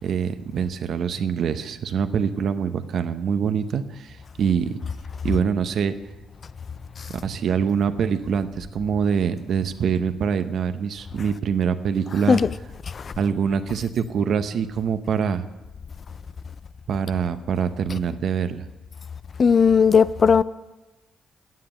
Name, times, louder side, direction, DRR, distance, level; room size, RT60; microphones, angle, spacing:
voice 1, 0.0-4.8 5.2-5.9 7.2-12.4 13.2-15.4 16.9-18.7, right 7 dB, 65° right, 0.8 m, -24 dB
voice 2, 12.1-12.6 12.9-13.1 19.4-20.4, left 6 dB, 40° left, 0.4 m, -17 dB
9.4 x 7.6 x 8.7 m
cardioid pair, 90°, 0 cm